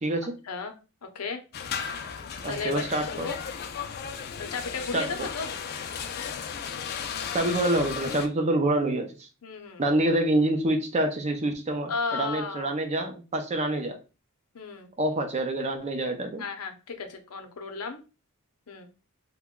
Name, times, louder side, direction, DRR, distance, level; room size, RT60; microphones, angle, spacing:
voice 1, 0.0-0.4 2.4-3.3 4.9-5.3 7.3-9.3 9.8-14.0 15.0-16.4, right 1 dB, 30° right, 0.5 m, -27 dB
voice 2, 1.0-1.4 2.5-3.4 4.4-5.5 9.4-9.8 11.9-12.7 14.5-14.9 16.4-18.0 18.7-18.9, left 4 dB, 85° left, 0.6 m, -34 dB
sound 1, 1.5-8.3, left 7 dB, 45° left, 0.4 m, -35 dB
3.0 x 2.2 x 3.6 m
head